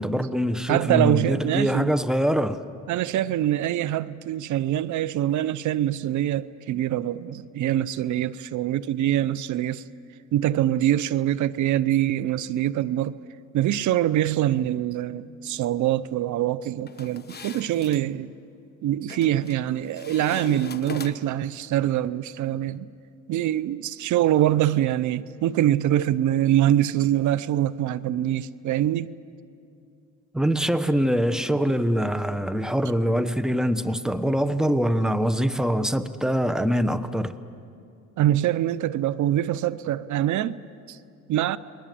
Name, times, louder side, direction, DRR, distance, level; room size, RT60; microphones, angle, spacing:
voice 1, 0.0-2.6 30.3-37.4, equal, ahead, 1.0 m, -24 dB
voice 2, 0.7-1.9 2.9-9.8 10.3-13.2 13.5-18.3 18.8-22.9 23.3-29.1 38.2-40.6 40.9-41.0 41.3-41.6, right 12 dB, 75° right, 0.6 m, -24 dB
sound 1, 16.9-18.1 19.1-19.6 20.0-21.4, left 5 dB, 35° left, 1.3 m, -39 dB
30.0 x 21.0 x 7.6 m
cardioid pair, 90°, 30 cm